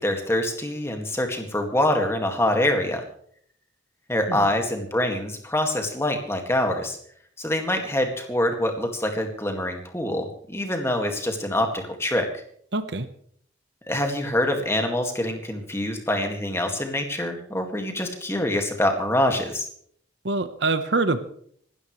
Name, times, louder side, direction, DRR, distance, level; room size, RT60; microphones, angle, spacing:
voice 1, 0.0-3.0 4.1-7.0 7.4-12.3 13.9-19.7, left 1 dB, 15° left, 4 dB, 2.0 m, -25 dB
voice 2, 12.7-13.1 20.2-21.2, right 3 dB, 65° right, 11 dB, 1.1 m, -25 dB
26.0 x 12.5 x 3.2 m, 0.62 s
head